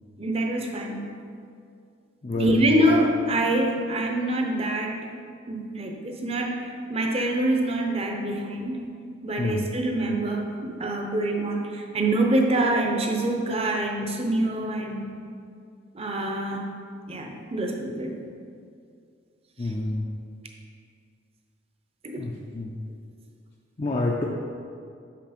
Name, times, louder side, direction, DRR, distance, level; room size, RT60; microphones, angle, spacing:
voice 1, 0.2-1.1 2.3-5.1 5.5-8.9 9.2-15.1 15.9-16.7 17.1-18.2 19.6-19.7 22.0-22.2, right 1 dB, 30° right, 2 dB, 0.7 m, -25 dB
voice 2, 2.2-2.6 9.4-9.7 19.6-20.1 22.2-22.8 23.8-24.2, left 2 dB, 30° left, -2 dB, 0.4 m, -28 dB
5.8 x 5.8 x 5.1 m, 2.4 s
head